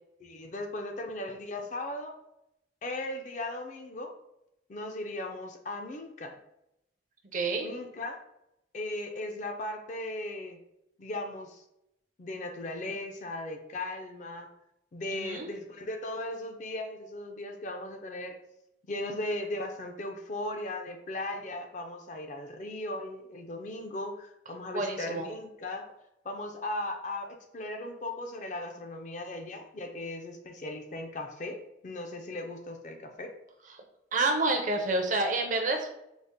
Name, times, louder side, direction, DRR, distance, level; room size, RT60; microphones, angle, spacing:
voice 1, 0.2-2.1 2.8-4.1 4.7-6.4 7.6-8.2 8.7-10.6 11.0-11.6 12.2-14.5 14.9-18.4 18.8-25.8 26.2-33.3, left 1 dB, 40° left, 5 dB, 0.4 m, -37 dB
voice 2, 7.3-7.7 15.1-15.5 24.7-25.2 34.1-35.9, right 2 dB, 40° right, 4 dB, 0.5 m, -28 dB
4.0 x 2.0 x 3.5 m, 0.83 s
head